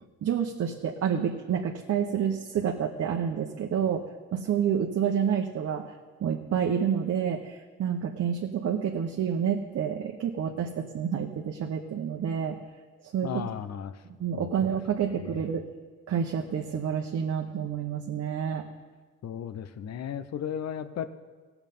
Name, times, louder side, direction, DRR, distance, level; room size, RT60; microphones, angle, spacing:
voice 1, 0.2-5.9 6.2-12.6 13.0-13.4 14.2-15.6 16.1-18.6, right 8 dB, 55° right, 1 dB, 1.0 m, -29 dB
voice 2, 13.2-14.0 14.3-14.8 15.2-15.4 19.2-21.1, left 8 dB, 60° left, 12 dB, 0.8 m, -35 dB
16.5 x 7.1 x 5.5 m, 1.4 s
cardioid pair, 90°, 30 cm